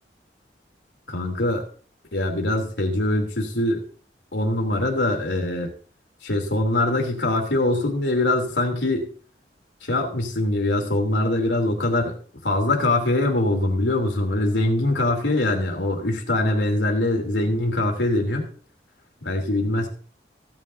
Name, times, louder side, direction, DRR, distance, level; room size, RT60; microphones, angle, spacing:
voice 1, 1.1-1.6 2.1-3.8 4.3-5.7 6.2-9.1 9.8-12.2 12.4-18.5 19.2-19.9, left 1 dB, 90° left, 2 dB, 2.9 m, -23 dB
16.0 x 9.4 x 2.7 m, 0.42 s
head